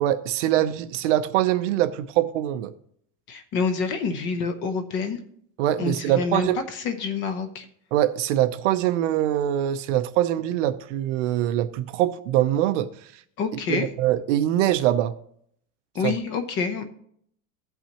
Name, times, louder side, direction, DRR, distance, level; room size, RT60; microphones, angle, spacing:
voice 1, 0.0-2.7 5.6-6.6 7.9-12.9 13.7-15.1 16.0-16.1, right 12 dB, 60° right, 0.7 m, -23 dB
voice 2, 3.3-5.2 5.8-7.7 13.4-13.9 15.9-16.8, left 5 dB, 30° left, 0.7 m, -27 dB
16.5 x 5.7 x 2.9 m
supercardioid pair, 175°, 41 cm